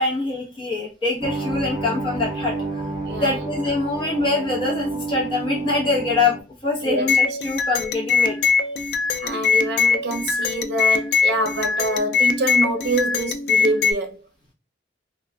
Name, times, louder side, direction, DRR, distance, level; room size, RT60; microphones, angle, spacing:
voice 1, 0.0-2.5 3.2-6.4 6.6-8.4, left 3 dB, 30° left, 1.0 m, -24 dB
sound 1, 1.2-6.4, right 3 dB, 30° right, 1.4 m, -29 dB
voice 2, 3.1-3.4 6.8-7.4 9.2-14.2, right 1 dB, 65° right, 0.6 m, -25 dB
sound 2, 7.1-13.9, left 5 dB, 65° left, 0.3 m, -21 dB
3.0 x 2.4 x 2.2 m
head